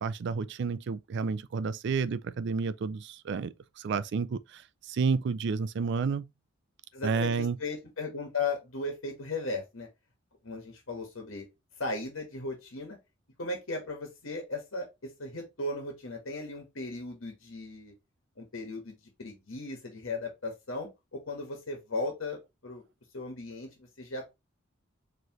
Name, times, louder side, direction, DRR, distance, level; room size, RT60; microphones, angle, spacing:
voice 1, 0.0-6.3 7.0-7.6, right 5 dB, 55° right, 0.4 m, -31 dB
voice 2, 6.9-9.9 10.4-11.5 11.8-13.0 13.4-17.9 18.4-22.8 23.1-24.2, left 3 dB, 75° left, 1.4 m, -37 dB
4.6 x 3.2 x 2.9 m
head